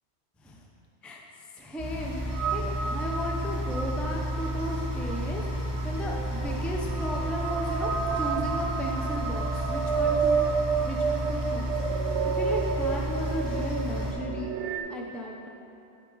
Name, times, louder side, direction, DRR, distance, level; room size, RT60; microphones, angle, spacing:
voice 1, 1.5-5.4 5.8-10.4 10.8-14.5 14.9-15.5, equal, ahead, -1 dB, 0.5 m, -35 dB
sound 1, 1.8-14.1, equal, 55° left, 2.1 m, -32 dB
sound 2, 2.3-14.8, right 6 dB, 70° right, 0.9 m, -31 dB
11.5 x 4.9 x 3.9 m, 2.8 s
omnidirectional pair, 1.3 m